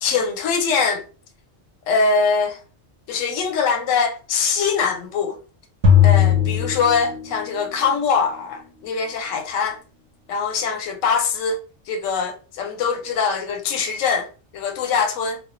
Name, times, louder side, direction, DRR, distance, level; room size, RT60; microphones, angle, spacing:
voice 1, 0.0-1.0 1.9-2.6 3.1-5.4 6.0-9.8 10.3-11.6 11.9-15.4, left 5 dB, 85° left, 0.9 m, -22 dB
sound 1, 5.8-7.6, left 8 dB, 80° right, 0.9 m, -17 dB
2.3 x 2.2 x 2.4 m
omnidirectional pair, 1.3 m